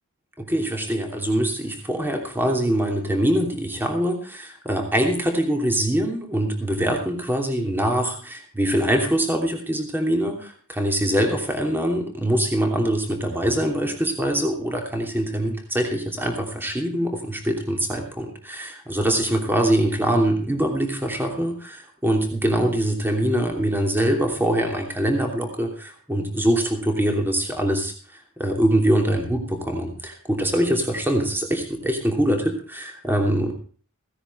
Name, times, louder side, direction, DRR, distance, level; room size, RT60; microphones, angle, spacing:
voice 1, 0.4-33.5, right 1 dB, 10° right, 2 dB, 2.9 m, -23 dB
16.5 x 10.0 x 4.5 m, 0.43 s
head